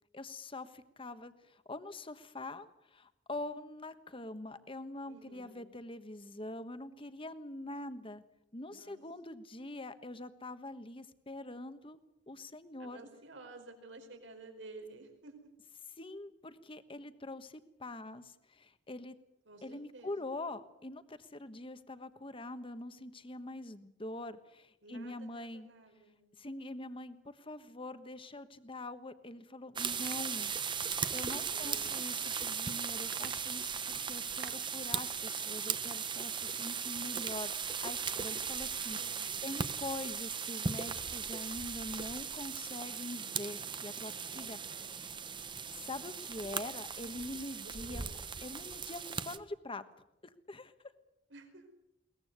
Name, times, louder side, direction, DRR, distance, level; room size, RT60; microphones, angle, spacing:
voice 1, 0.1-8.2 8.5-12.0 12.3-13.0 15.9-19.2 19.6-25.7 26.4-30.5 31.1-39.0 39.4-44.6 44.9-45.2 45.8-48.0 48.4-49.8 50.2-50.7, left 2 dB, 30° left, 11 dB, 1.3 m, -44 dB
voice 2, 5.1-5.6 8.7-9.0 9.3-9.4 12.8-15.3 19.4-20.4 24.8-26.2 31.5-32.1 38.9-39.5 44.3-44.4 44.7-45.3 47.6-48.2 51.3-51.6, right 2 dB, 80° right, 5 dB, 4.8 m, -53 dB
sound 1, 29.8-49.4, right 6 dB, 25° right, 1.0 m, -38 dB
sound 2, 30.1-30.4 31.2-31.8 32.2-32.3 33.0-33.8 34.4-34.8 35.1-35.2, right 9 dB, 55° right, 1.0 m, -50 dB
22.0 x 19.5 x 8.2 m, 0.84 s
head